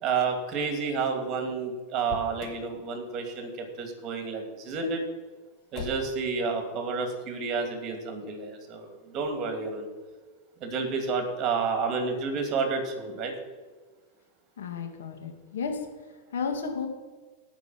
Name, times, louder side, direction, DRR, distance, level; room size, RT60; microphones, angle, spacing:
voice 1, 0.0-5.0 5.7-9.9 10.6-13.3, right 4 dB, 40° right, 5 dB, 2.9 m, -30 dB
Motor vehicle (road), 2.0-2.7 5.7-6.3, left 4 dB, 40° left, 2.5 m, -40 dB
voice 2, 14.6-15.8 16.3-16.9, left 5 dB, 90° left, 4 dB, 2.1 m, -32 dB
17.5 x 5.9 x 6.0 m, 1.3 s
supercardioid pair, 125°, 0 cm